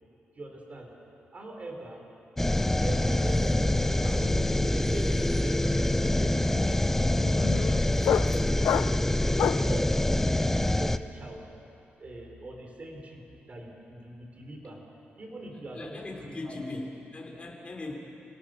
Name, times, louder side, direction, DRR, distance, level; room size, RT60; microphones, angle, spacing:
voice 1, 0.3-0.9 1.3-2.0 2.8-4.3 4.7-8.8 9.2-11.5 12.0-14.8 15.2-15.9 16.2-16.5 17.9-18.0, right 2 dB, 35° right, 1 dB, 4.8 m, -42 dB
sound 1, 2.4-11.0, left 1 dB, 10° left, 0.7 m, -25 dB
sound 2, 3.0-3.3 3.5-9.8, left 9 dB, 90° left, 0.5 m, -32 dB
voice 2, 15.5-17.9, left 2 dB, 30° left, -1 dB, 4.0 m, -39 dB
29.0 x 18.0 x 6.8 m, 2.8 s
cardioid pair, 100°, 4 cm